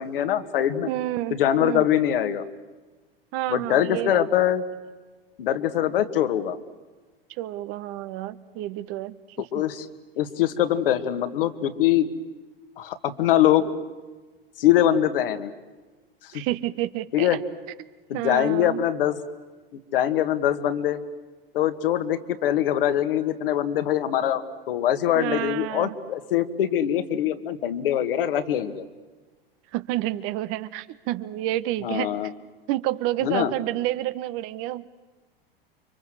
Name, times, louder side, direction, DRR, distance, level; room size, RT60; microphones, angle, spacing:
voice 1, 0.0-0.9 1.3-2.4 3.5-4.6 5.4-6.6 9.5-9.9 10.2-12.1 12.8-13.7 14.6-15.5 16.3-16.4 17.1-17.4 18.1-19.2 19.7-21.0 21.5-28.8 31.8-32.3 33.2-33.5, left 11 dB, 70° left, 9 dB, 2.1 m, -23 dB
voice 2, 0.8-1.3 1.6-1.9 3.3-4.3 7.3-9.6 16.3-17.4 18.1-18.9 25.1-26.0 29.7-32.3 32.7-34.9, right 15 dB, 45° right, 14 dB, 1.3 m, -29 dB
29.5 x 25.0 x 7.9 m, 1.3 s
hypercardioid pair, 95°, 29 cm